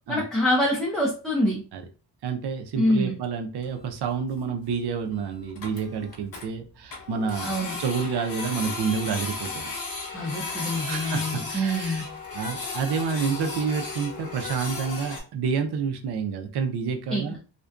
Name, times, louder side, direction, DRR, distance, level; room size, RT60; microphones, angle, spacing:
voice 1, 0.1-1.6 2.8-3.2 7.4-7.8 10.1-12.1 17.1-17.4, equal, ahead, -4 dB, 0.4 m, -25 dB
voice 2, 2.2-7.5 7.8-9.7 10.9-11.2 11.5-12.0 12.3-17.5, right 6 dB, 65° right, 6 dB, 0.5 m, -29 dB
Printer, 3.6-3.7 3.9-4.0 4.4-4.5 4.7-4.8 5.1-5.2 5.4-6.5 6.9-15.2, left 3 dB, 55° left, 0.8 m, -35 dB
2.5 x 2.1 x 2.3 m, 0.36 s
wide cardioid pair, 95°, 43 cm